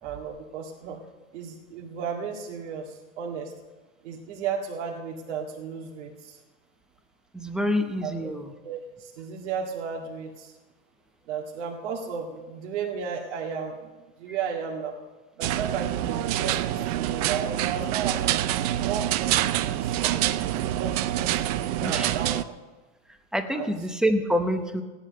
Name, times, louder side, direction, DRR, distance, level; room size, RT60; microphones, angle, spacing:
voice 1, 0.0-1.0 1.3-3.5 4.0-6.4 8.0-8.3 8.6-10.5 11.3-13.9 14.2-14.9 15.4-18.3 18.8-22.4 23.5-23.7, right 6 dB, 60° right, -1 dB, 2.1 m, -34 dB
voice 2, 7.3-8.5 21.8-22.1 23.3-24.8, equal, ahead, 7 dB, 0.7 m, -26 dB
sound 1, 15.4-22.4, right 13 dB, 30° right, 0.4 m, -26 dB
16.0 x 11.0 x 6.6 m, 1.2 s
hypercardioid pair, 145°, 39 cm